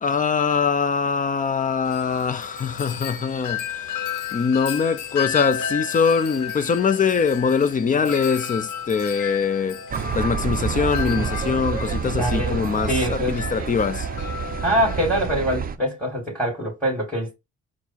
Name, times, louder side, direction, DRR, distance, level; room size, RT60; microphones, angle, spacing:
voice 1, 0.0-9.8 10.2-14.1, left 6 dB, 25° left, 0.5 m, -23 dB
Wind chime, 1.9-15.3, left 8 dB, 85° left, 0.7 m, -33 dB
sound 1, 9.9-15.8, right 7 dB, 30° right, 0.5 m, -28 dB
voice 2, 12.1-13.6 14.6-17.4, equal, 5° left, 2.2 m, -24 dB
4.4 x 2.0 x 4.1 m
cardioid pair, 90°, 30 cm